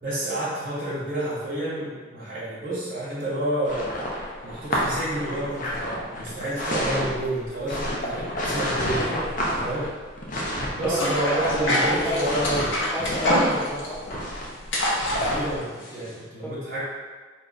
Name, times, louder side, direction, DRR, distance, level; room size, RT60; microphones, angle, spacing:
voice 1, 0.0-3.9 4.4-9.1 9.5-9.9 10.7-12.7 15.1-16.8, right 1 dB, 45° right, -10 dB, 0.9 m, -29 dB
sound 1, 3.6-15.5, equal, 45° left, 0.5 m, -29 dB
voice 2, 10.8-11.2 11.6-14.0 16.4-16.5, equal, 5° left, -9 dB, 0.8 m, -31 dB
sound 2, 10.9-16.2, left 1 dB, 85° left, 0.7 m, -25 dB
2.4 x 2.2 x 3.8 m, 1.4 s
head